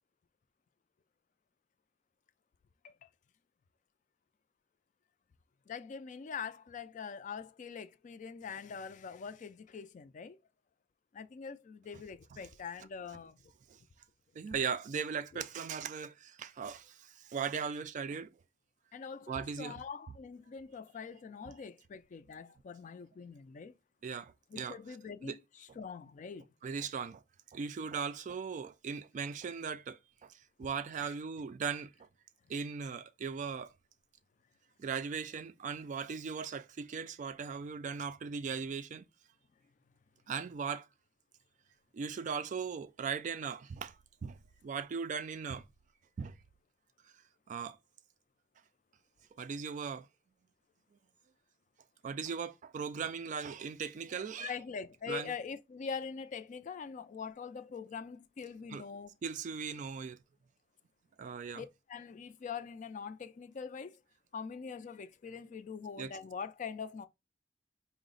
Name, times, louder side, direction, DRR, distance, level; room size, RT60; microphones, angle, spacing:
voice 1, 5.7-10.4 11.1-13.4 15.3-15.4 18.9-23.8 24.5-26.4 31.0-31.1 54.4-59.1 61.6-64.0 64.3-67.1, left 6 dB, 45° left, 0.3 m, -43 dB
voice 2, 14.4-18.3 19.3-19.8 24.0-24.8 25.2-25.4 26.6-27.2 27.5-31.9 32.5-33.7 34.8-39.0 40.3-40.9 41.9-45.7 46.2-46.4 47.5-47.8 49.3-50.1 52.0-54.5 55.1-55.3 58.7-58.8 59.2-60.2 61.2-61.6 66.0-66.1, right 6 dB, 45° right, 0.3 m, -38 dB
4.8 x 2.0 x 3.8 m
head